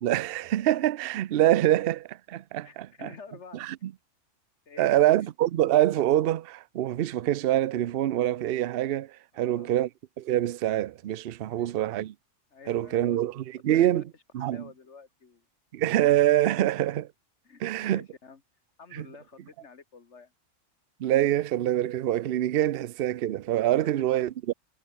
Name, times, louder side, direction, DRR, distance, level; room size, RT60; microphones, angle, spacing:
voice 1, 0.0-3.1 3.5-3.9 4.8-9.9 10.2-12.1 12.7-14.0 14.3-14.7 15.7-17.1 17.6-18.1 18.9-19.1 21.0-24.5, right 13 dB, 60° right, 0.7 m, -25 dB
voice 2, 2.6-3.7 4.7-5.3 9.3-9.8 11.5-11.8 12.5-13.2 13.7-14.0 14.4-15.5 17.5-18.4 18.8-20.3 23.6-23.9, left 5 dB, 60° left, 2.0 m, -49 dB
omnidirectional pair, 1.3 m